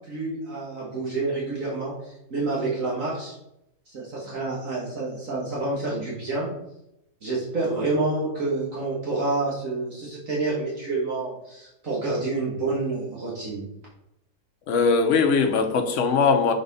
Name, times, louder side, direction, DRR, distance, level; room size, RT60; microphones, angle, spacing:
voice 1, 0.1-3.4 3.9-6.5 7.2-13.7, right 3 dB, 60° right, -5 dB, 1.8 m, -28 dB
voice 2, 14.7-16.5, left 5 dB, 60° left, 6 dB, 1.1 m, -20 dB
6.8 x 4.3 x 4.0 m, 0.82 s
omnidirectional pair, 1.6 m